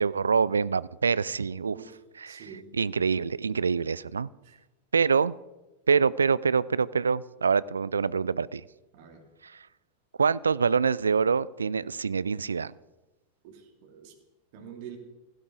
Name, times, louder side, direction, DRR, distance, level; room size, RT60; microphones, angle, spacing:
voice 1, 0.0-1.8 2.2-2.4 2.7-4.3 4.9-5.3 5.9-8.6 9.4-9.6 10.2-12.7, right 5 dB, 75° right, 21 dB, 0.4 m, -25 dB
voice 2, 2.3-2.7 4.4-4.6 8.9-9.2 13.4-14.1 14.5-15.0, right 8 dB, 50° right, 3 dB, 2.9 m, -46 dB
16.0 x 16.0 x 3.9 m, 1.1 s
figure-of-eight pair, 90°, 0 cm